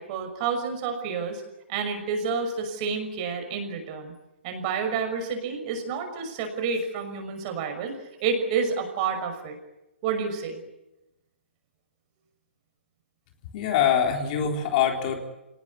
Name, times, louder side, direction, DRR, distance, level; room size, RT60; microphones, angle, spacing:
voice 1, 0.0-1.4 1.7-4.1 4.4-7.9 8.2-9.6 10.0-10.6, right 5 dB, 35° right, 6 dB, 5.9 m, -29 dB
voice 2, 13.5-15.2, left 8 dB, 40° left, 3 dB, 4.0 m, -24 dB
26.0 x 19.0 x 9.8 m, 0.97 s
hypercardioid pair, 145°, 7 cm